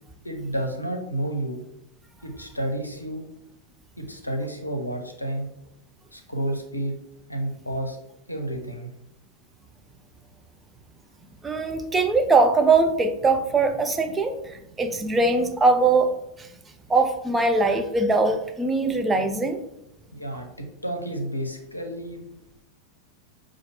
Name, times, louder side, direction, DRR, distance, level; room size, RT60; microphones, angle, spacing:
voice 1, 0.2-1.6 2.2-3.3 4.0-5.5 6.1-7.0 7.3-8.0 8.3-8.9 20.1-22.3, right 1 dB, 85° left, 4 dB, 0.6 m, -30 dB
voice 2, 11.4-16.5 16.9-19.6, right 3 dB, 15° right, 6 dB, 0.4 m, -21 dB
5.6 x 2.5 x 2.8 m, 0.84 s
figure-of-eight pair, 90°, 0 cm